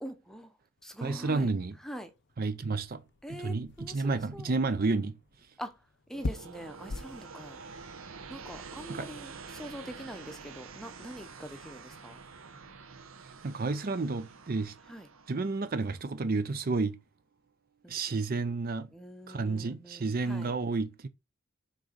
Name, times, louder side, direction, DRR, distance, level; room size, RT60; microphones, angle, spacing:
voice 1, 0.0-1.5 1.8-2.1 3.2-4.5 5.6-5.8 6.1-7.6 8.3-12.2 14.9-15.1 17.8-18.0 18.9-20.5, equal, ahead, 0.7 m, -44 dB
sound 1, 0.8-7.3, left 2 dB, 50° left, 0.6 m, -44 dB
voice 2, 1.0-1.7 2.4-3.0 3.3-5.2 8.9-9.1 13.2-14.7 15.3-17.0 17.9-18.9 19.3-21.1, right 3 dB, 40° right, 0.5 m, -31 dB
sound 2, 6.1-16.8 17.9-18.5, right 5 dB, 70° right, 0.9 m, -48 dB
6.3 x 4.0 x 5.1 m
head